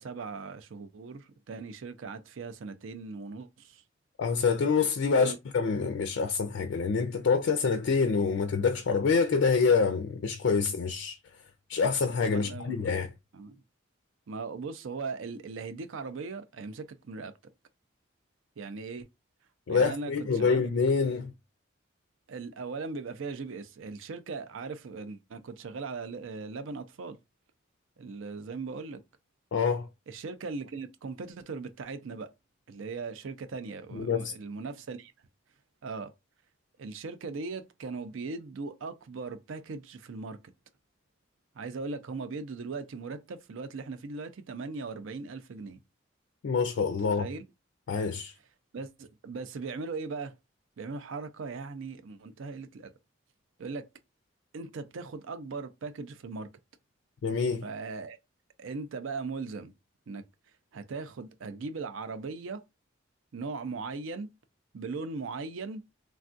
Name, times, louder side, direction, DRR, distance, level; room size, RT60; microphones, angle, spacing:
voice 1, 0.0-3.8 5.2-5.4 12.3-12.9 13.3-13.6 14.3-17.4 18.6-19.1 19.7-20.7 22.3-27.2 28.0-29.0 30.1-32.3 32.7-35.1 35.8-36.1 36.8-40.4 41.6-45.8 47.1-47.4 48.7-50.3 50.8-52.9 53.6-53.9 54.5-56.5 57.6-58.2 58.6-59.7 60.1-60.2 60.7-62.6 63.3-64.4 64.7-65.8, right 4 dB, 75° right, 0.4 m, -39 dB
voice 2, 4.2-11.2 11.7-13.1 19.7-21.3 29.5-29.9 33.9-34.3 46.4-47.2 47.9-48.3 57.2-57.6, left 5 dB, 65° left, 0.4 m, -26 dB
3.4 x 2.3 x 2.5 m
head